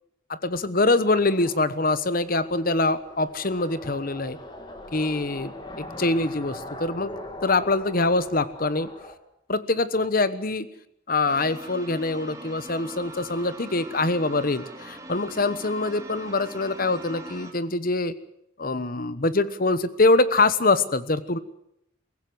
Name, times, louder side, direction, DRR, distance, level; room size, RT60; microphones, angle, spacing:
voice 1, 0.3-4.4 4.9-7.1 7.4-8.9 9.5-10.7 11.1-18.1 18.6-21.4, left 2 dB, 45° left, 14 dB, 1.1 m, -24 dB
sound 1, 0.9-9.2, left 1 dB, 20° left, 2.7 m, -41 dB
sound 2, 11.2-17.5, right 2 dB, 15° right, 2.7 m, -41 dB
23.5 x 16.0 x 7.9 m, 0.78 s
head